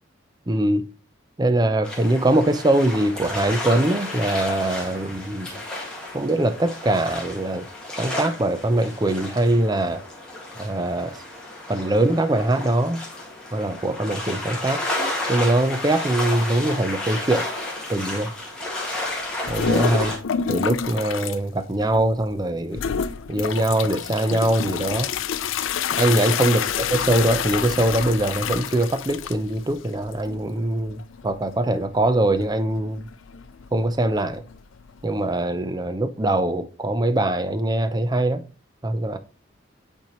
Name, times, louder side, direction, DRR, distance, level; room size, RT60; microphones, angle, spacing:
voice 1, 0.5-0.9 1.4-5.5 6.1-7.7 8.0-10.0 10.6-11.2 11.7-13.0 13.5-14.8 15.3-17.4 17.9-18.3 19.5-20.1 20.5-22.8 23.3-25.1 25.9-33.1 33.7-34.4 35.0-38.4 38.8-39.2, right 1 dB, 20° right, 0.5 m, -22 dB
sound 1, 1.8-20.2, left 1 dB, 5° left, 1.9 m, -32 dB
sound 2, 19.4-21.4 21.8-22.3 22.7-35.4, left 7 dB, 90° left, 0.5 m, -29 dB
8.5 x 4.4 x 3.0 m
head